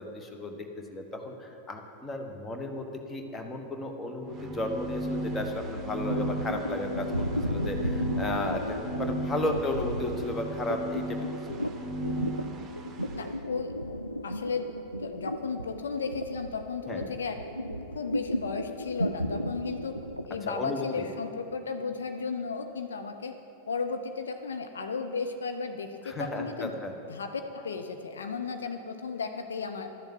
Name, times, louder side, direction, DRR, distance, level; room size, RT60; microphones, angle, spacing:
voice 1, 0.0-11.2 11.5-11.6 16.9-17.1 20.4-21.1 26.0-26.9, left 2 dB, 15° left, 4 dB, 1.2 m, -34 dB
sound 1, 4.2-13.3, right 1 dB, 20° right, 1.1 m, -36 dB
sound 2, 5.2-20.7, equal, 90° right, 0.3 m, -34 dB
voice 2, 13.1-14.0 14.2-14.7 15.0-20.0 20.2-23.3 23.7-26.7 27.1-29.9, left 5 dB, 70° left, 6 dB, 0.6 m, -34 dB
12.0 x 7.0 x 7.8 m, 2.9 s
figure-of-eight pair, 90°, 0 cm